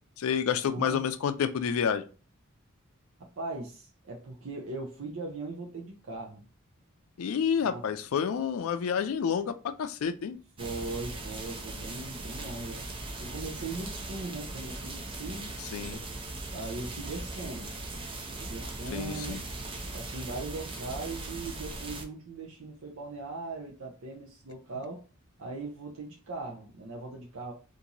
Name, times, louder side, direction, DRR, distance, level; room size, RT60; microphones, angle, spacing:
voice 1, 0.2-2.0 7.2-10.4 15.6-16.0 18.9-19.4, left 7 dB, 85° left, 9 dB, 0.4 m, -29 dB
voice 2, 0.7-1.0 3.2-6.4 7.6-7.9 10.6-12.8 13.2-15.5 15.9-16.1 16.5-17.7 18.4-19.4 19.9-25.0 25.4-27.5, right 3 dB, 70° right, -1 dB, 0.6 m, -39 dB
sound 1, 10.6-22.0, right 2 dB, 25° right, 0.5 m, -39 dB
2.9 x 2.6 x 3.8 m, 0.35 s
head